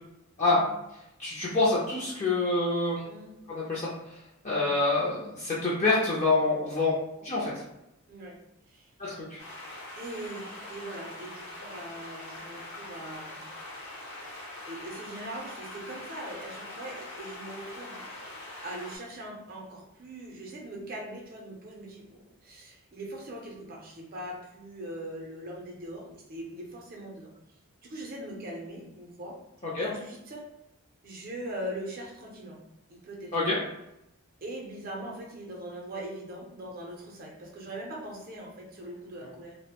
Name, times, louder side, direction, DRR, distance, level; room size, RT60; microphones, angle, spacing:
voice 1, 1.2-3.0 3.5-3.9 4.4-6.9 7.2-7.5 9.0-9.4 29.7-29.9 33.3-33.6, left 3 dB, 30° left, -6 dB, 0.4 m, -26 dB
voice 2, 4.5-5.1 8.1-8.4 8.7-8.9 10.0-13.5 14.7-18.0 18.6-27.3 27.8-29.4 29.8-30.5 31.0-32.6 32.9-33.4 34.4-39.6, right 1 dB, 40° right, 0 dB, 0.5 m, -41 dB
sound 1, 9.4-19.0, left 1 dB, 70° left, 0.8 m, -43 dB
2.5 x 2.0 x 2.8 m, 0.86 s
head